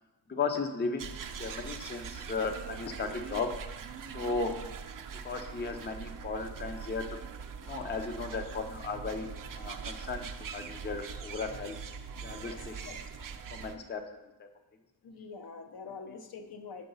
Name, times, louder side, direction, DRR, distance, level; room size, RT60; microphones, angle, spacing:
voice 1, 0.3-3.5 4.1-4.6 5.2-7.0 7.6-9.3 9.5-11.8 12.2-12.7 13.5-14.0 14.4-14.5, left 4 dB, 25° left, 6 dB, 0.5 m, -35 dB
sound 1, 1.0-13.8, right 6 dB, 50° right, 0.5 m, -42 dB
voice 2, 15.0-16.9, left 5 dB, 60° left, 5 dB, 0.7 m, -45 dB
6.7 x 4.7 x 5.4 m, 1.0 s
wide cardioid pair, 140°, 42 cm